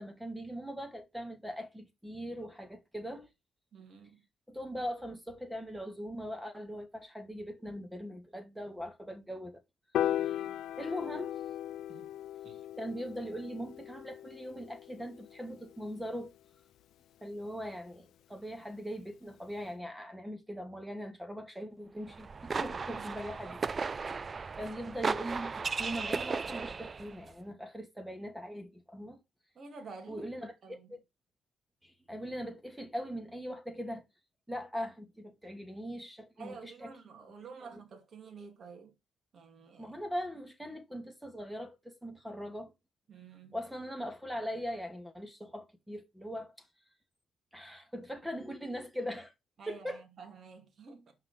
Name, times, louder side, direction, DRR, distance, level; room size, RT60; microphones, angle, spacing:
voice 1, 0.0-3.3 4.5-9.6 10.1-10.4 10.8-11.4 12.8-16.3 17.2-24.1 24.6-29.2 30.1-31.0 31.8-34.0 34.5-36.9 37.7-37.8 39.8-42.7 43.5-46.7 47.5-49.3 49.7-50.0, equal, 5° right, 2.5 m, -41 dB
voice 2, 3.7-4.2 10.0-10.7 11.9-12.1 12.4-12.6 22.8-23.1 29.5-30.9 36.4-38.9 39.3-40.0 43.1-43.6 49.6-51.1, right 4 dB, 50° right, 2.3 m, -50 dB
Piano, 9.9-16.3, left 11 dB, 80° left, 0.6 m, -37 dB
sound 1, 22.1-27.1, right 4 dB, 30° right, 0.4 m, -36 dB
5.8 x 5.8 x 6.9 m
cardioid pair, 115°, 0 cm